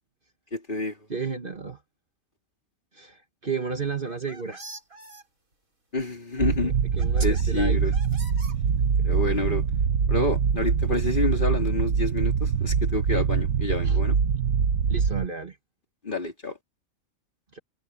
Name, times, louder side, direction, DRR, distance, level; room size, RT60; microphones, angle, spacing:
voice 1, 0.5-1.0 5.9-6.7 7.2-7.9 9.0-9.6 10.1-14.2 16.0-16.6, left 2 dB, 35° left, 3.2 m, -28 dB
voice 2, 1.1-1.8 2.9-4.6 6.6-7.9 13.8-14.0 14.9-15.6 17.5-17.6, right 5 dB, 40° right, 1.7 m, -33 dB
sound 1, 3.9-5.2 6.4-6.5 7.0-7.4 7.9-9.0, right 2 dB, 75° right, 7.5 m, -43 dB
sound 2, 6.4-15.3, right 6 dB, 90° right, 1.7 m, -24 dB
omnidirectional pair, 1.5 m